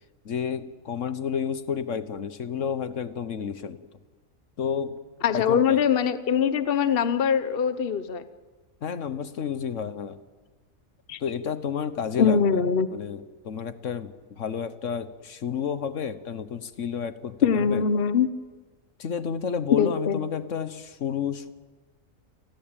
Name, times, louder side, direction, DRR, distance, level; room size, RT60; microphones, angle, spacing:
voice 1, 0.2-3.8 4.6-5.0 5.3-5.8 8.8-10.2 11.2-12.6 12.9-17.8 19.0-21.5, left 7 dB, 65° left, 13 dB, 1.4 m, -31 dB
voice 2, 5.2-8.2 11.1-11.2 12.2-12.9 17.4-18.3 19.7-20.2, left 7 dB, 45° left, 12 dB, 1.1 m, -22 dB
29.0 x 20.0 x 9.0 m, 1.4 s
omnidirectional pair, 1.4 m